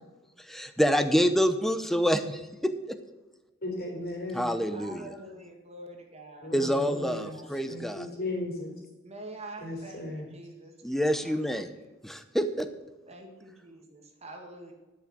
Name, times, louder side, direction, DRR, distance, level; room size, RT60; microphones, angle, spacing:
voice 1, 0.4-3.0 4.3-5.1 6.5-8.1 10.8-11.7 12.0-12.7, equal, ahead, 9 dB, 0.8 m, -27 dB
voice 2, 3.6-4.5 6.4-7.4 7.7-8.7 9.6-10.3, left 2 dB, 50° left, -1 dB, 3.7 m, -36 dB
voice 3, 4.7-6.5 6.9-7.5 9.0-10.8 11.2-11.9 13.1-14.7, right 1 dB, 35° right, 2 dB, 1.9 m, -46 dB
11.5 x 6.4 x 7.5 m, 1.2 s
head